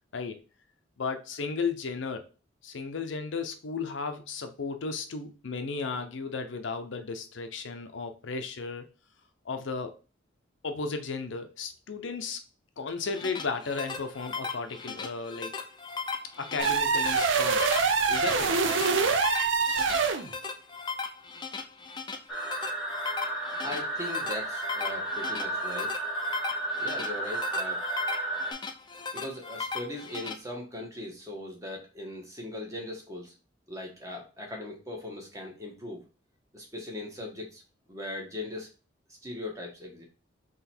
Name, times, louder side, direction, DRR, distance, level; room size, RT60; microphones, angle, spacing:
voice 1, 1.0-2.2 2.6-8.9 9.5-9.9 10.6-12.4 12.8-15.5 16.4-17.7 18.1-18.6, left 4 dB, 75° left, 0.6 m, -34 dB
sound 1, 12.9-30.3, left 5 dB, 25° left, 0.4 m, -38 dB
sound 2, 16.6-20.3, right 5 dB, 75° right, 0.6 m, -25 dB
sound 3, 22.3-28.5, right 2 dB, ahead, 1.2 m, -33 dB
voice 2, 23.6-26.0 26.8-27.8 29.1-33.3 33.7-36.0 36.5-37.6 37.9-38.7 39.2-40.1, left 1 dB, 15° right, 1.1 m, -39 dB
3.9 x 3.0 x 4.3 m
head